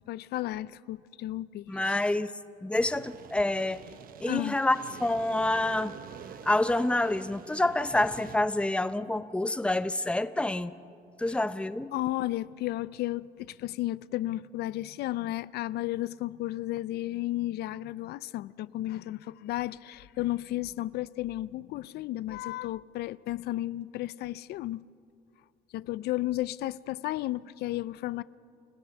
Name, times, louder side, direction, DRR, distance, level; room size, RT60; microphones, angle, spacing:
voice 1, 0.1-2.0 4.3-4.5 11.9-24.8 25.7-28.2, left 15 dB, 75° left, 0.5 m, -33 dB
voice 2, 1.7-2.3 2.6-3.8 4.2-6.0 6.4-10.7 11.2-11.9, left 2 dB, 5° left, 0.8 m, -27 dB
sound 1, 2.8-8.4, right 8 dB, 55° right, 1.1 m, -47 dB
29.5 x 15.5 x 7.2 m
cardioid pair, 110°, 17 cm